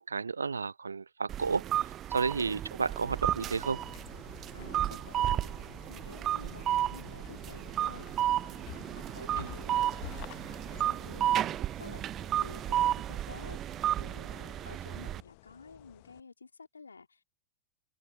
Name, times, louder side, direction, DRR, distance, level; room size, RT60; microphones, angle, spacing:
voice 1, 0.0-3.8 9.4-9.5, right 5 dB, 75° right, 0.5 m, -32 dB
sound 1, 1.3-15.2, right 12 dB, 30° right, 0.6 m, -33 dB
sound 2, 3.1-16.2, left 28 dB, 45° left, 1.2 m, -51 dB
voice 2, 4.5-10.3 10.6-17.2, left 4 dB, 75° left, 4.0 m, -51 dB
figure-of-eight pair, 90°, 0 cm